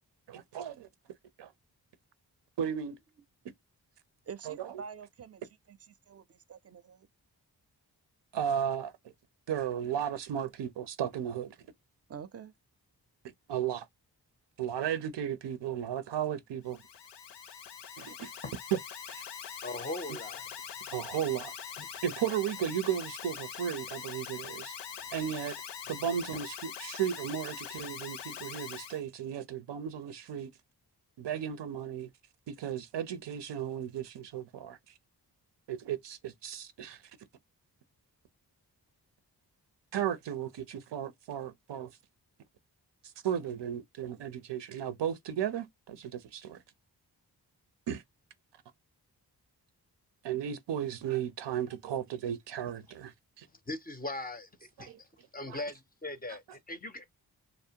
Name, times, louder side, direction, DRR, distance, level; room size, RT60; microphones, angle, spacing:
voice 1, 0.3-0.9 1.4-1.5 2.6-3.0 4.5-4.7 8.3-8.9 9.5-11.6 13.5-13.9 14.6-16.8 18.0-18.3 18.7-18.8 19.1-19.2 20.9-21.5 22.0-24.7 25.1-25.6 25.9-30.5 31.2-32.1 32.5-34.8 35.7-37.0 39.9-41.9 43.2-46.6 47.9-48.0 50.2-53.5 54.8-55.0 55.5-55.6, right 9 dB, 90° right, 0.5 m, -34 dB
voice 2, 4.3-5.4 5.7-7.1 12.1-12.5, right 6 dB, 40° right, 0.4 m, -46 dB
Alarm, 16.6-29.0, left 7 dB, 85° left, 0.6 m, -43 dB
voice 3, 19.6-20.5 21.1-21.2 25.1-25.2 26.3-26.4 53.7-55.1 55.3-57.0, left 2 dB, 25° left, 0.4 m, -40 dB
2.5 x 2.0 x 2.7 m
cardioid pair, 65°, 41 cm